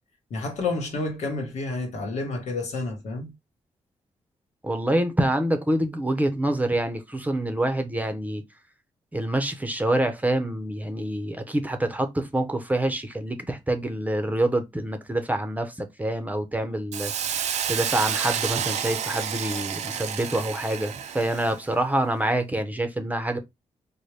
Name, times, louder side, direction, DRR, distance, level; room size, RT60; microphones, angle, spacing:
voice 1, 0.3-3.3, left 3 dB, 85° left, 1.2 m, -30 dB
voice 2, 4.6-8.4 9.1-17.1 17.7-23.4, right 1 dB, 15° right, 0.7 m, -26 dB
Hiss, 16.9-21.6, right 8 dB, 85° right, 0.4 m, -30 dB
4.0 x 2.2 x 3.3 m
cardioid pair, 85°, 12 cm